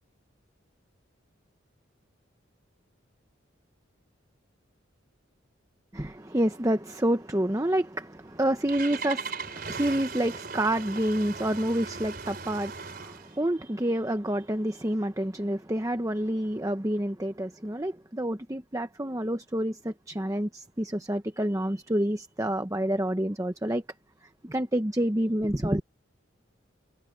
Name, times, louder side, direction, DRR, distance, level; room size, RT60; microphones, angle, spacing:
voice 1, 5.9-23.8 24.4-25.8, right 1 dB, 15° right, 0.9 m, -28 dB
Engine starting, 8.2-13.4, right 5 dB, 50° right, 4.0 m, -38 dB
head